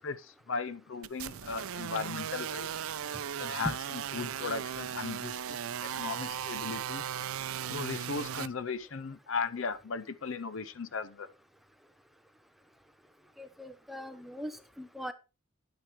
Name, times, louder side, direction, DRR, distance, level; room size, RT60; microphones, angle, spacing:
voice 1, 0.0-2.7 3.4-7.0 7.7-11.3, left 4 dB, 70° left, 0.7 m, -37 dB
sound 1, 1.0-8.5, right 9 dB, 90° right, 0.5 m, -37 dB
voice 2, 13.4-14.5 14.8-15.1, equal, ahead, 0.7 m, -41 dB
10.0 x 9.1 x 3.2 m
head